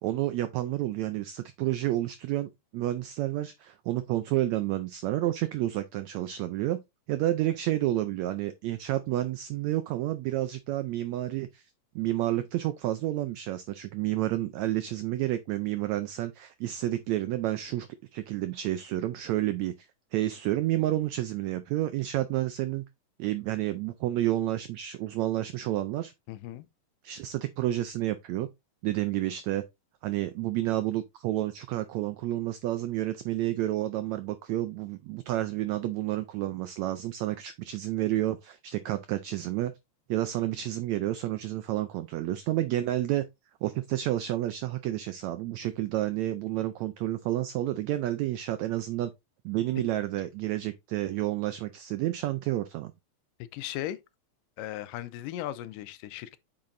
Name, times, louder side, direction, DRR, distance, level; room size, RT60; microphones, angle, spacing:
voice 1, 0.0-6.8 7.1-11.6 11.9-17.9 18.1-19.7 20.1-22.8 23.2-26.1 27.0-28.5 28.8-29.6 30.0-39.7 40.1-43.2 43.6-49.1 49.4-52.9, right 14 dB, 85° right, 1.6 m, -30 dB
voice 2, 26.3-26.7 53.5-54.0 54.6-56.4, left 13 dB, 85° left, 2.2 m, -37 dB
8.7 x 5.9 x 2.6 m
omnidirectional pair, 3.9 m